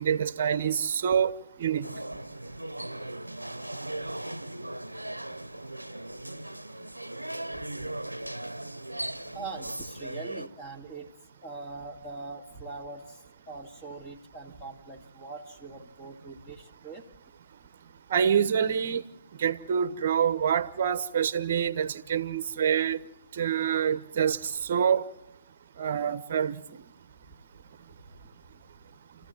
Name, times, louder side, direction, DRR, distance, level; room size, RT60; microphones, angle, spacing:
voice 1, 0.0-1.9 18.1-19.0 19.4-23.0 23.4-25.1 25.8-26.6, right 8 dB, 40° right, 1.0 m, -26 dB
sound 1, 1.8-10.5, right 1 dB, 85° right, 0.8 m, -38 dB
voice 2, 9.3-11.1 11.4-17.0 28.1-28.2, right 3 dB, 15° left, 2.4 m, -42 dB
29.0 x 15.0 x 9.2 m
figure-of-eight pair, 135°, 0 cm